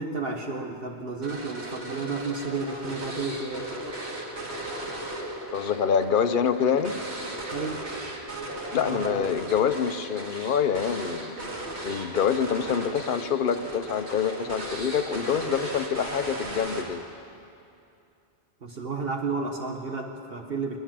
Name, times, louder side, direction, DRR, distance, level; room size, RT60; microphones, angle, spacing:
voice 1, 0.0-3.7 7.5-7.9 8.8-9.2 18.6-20.8, right 4 dB, 60° right, 2 dB, 1.4 m, -32 dB
sound 1, 1.2-17.2, right 1 dB, 80° right, 2.5 m, -36 dB
voice 2, 5.5-7.0 8.7-11.5 11.8-17.0, left 7 dB, 55° left, 10 dB, 0.9 m, -26 dB
20.5 x 19.5 x 7.6 m, 2.6 s
omnidirectional pair, 1.1 m